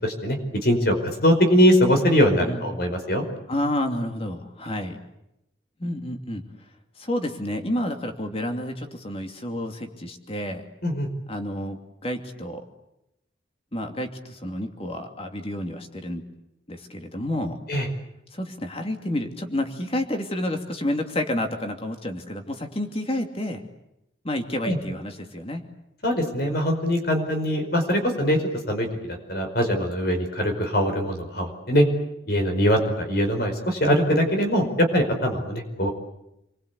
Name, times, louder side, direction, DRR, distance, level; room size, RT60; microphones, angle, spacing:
voice 1, 0.0-3.2 10.8-11.1 17.7-17.9 24.6-24.8 26.0-28.4 28.7-31.8 32.3-35.9, equal, 55° left, 5 dB, 5.1 m, -22 dB
voice 2, 2.4-2.8 3.5-5.0 5.8-6.4 7.0-10.6 11.3-12.6 13.7-16.2 16.7-17.6 18.3-23.6 24.2-25.6, left 1 dB, 30° left, 4 dB, 2.8 m, -30 dB
29.5 x 23.0 x 8.4 m, 0.86 s
head